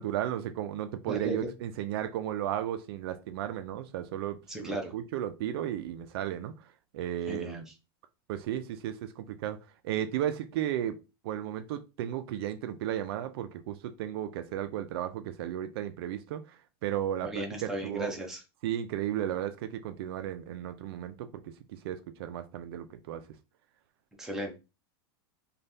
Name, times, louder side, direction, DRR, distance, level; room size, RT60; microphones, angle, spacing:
voice 1, 0.0-6.5 6.9-7.7 8.3-9.6 9.8-11.0 11.2-16.6 16.8-18.1 18.6-21.3 21.7-23.2, right 11 dB, 70° right, 0.4 m, -34 dB
voice 2, 4.5-4.9 7.3-7.6 17.2-18.4 24.2-24.6, right 1 dB, 5° right, 0.7 m, -36 dB
3.2 x 2.3 x 2.6 m
supercardioid pair, 140°, 13 cm